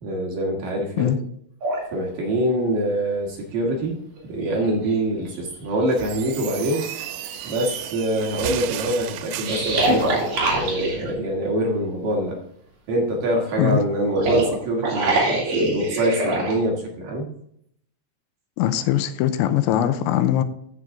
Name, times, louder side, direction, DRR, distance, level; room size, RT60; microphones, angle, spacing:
voice 1, 0.0-1.2 1.9-4.0 4.3-6.9 7.4-10.1 10.5-12.4 12.9-17.3, right 1 dB, 60° right, -1 dB, 2.5 m, -24 dB
sound 1, 1.6-1.9 3.6-3.7 4.2-5.2 5.8-5.9 6.5-7.7 9.4-11.2 14.0-16.6, right 2 dB, 45° right, 2.8 m, -24 dB
sound 2, 5.9-10.3, right 12 dB, 85° right, 3.0 m, -34 dB
voice 2, 18.6-20.4, left 11 dB, 80° left, 10 dB, 2.8 m, -21 dB
14.0 x 6.0 x 3.6 m, 0.70 s
omnidirectional pair, 5.6 m